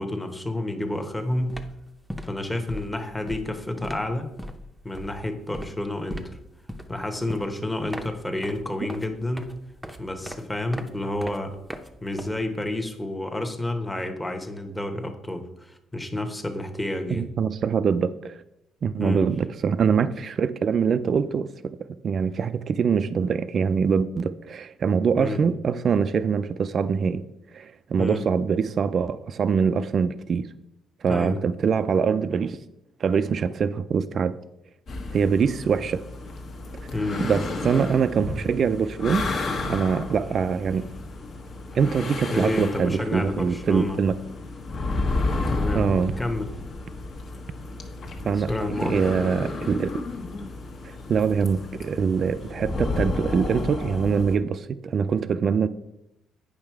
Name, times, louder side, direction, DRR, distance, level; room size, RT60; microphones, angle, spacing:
voice 1, 0.0-1.6 2.2-4.3 4.8-6.4 6.9-9.5 10.0-11.6 12.0-17.2 19.0-19.2 25.2-25.4 28.0-28.3 31.1-31.4 36.9-37.3 42.3-44.0 44.9-45.0 45.5-46.5 48.4-48.9, left 1 dB, 10° left, 1.0 m, -30 dB
sound 1, 0.9-1.1 1.4-12.8, equal, 5° right, 0.7 m, -39 dB
voice 2, 17.2-18.4 18.8-21.8 22.0-27.2 27.5-30.5 31.0-32.6 33.0-34.3 35.1-36.0 37.2-39.3 39.6-40.9 41.7-44.2 45.7-46.1 48.3-49.9 50.8-55.7, right 6 dB, 45° right, 0.4 m, -24 dB
sound 2, 34.9-54.4, left 2 dB, 50° left, 1.2 m, -32 dB
8.7 x 5.6 x 4.6 m
cardioid pair, 110°, 0 cm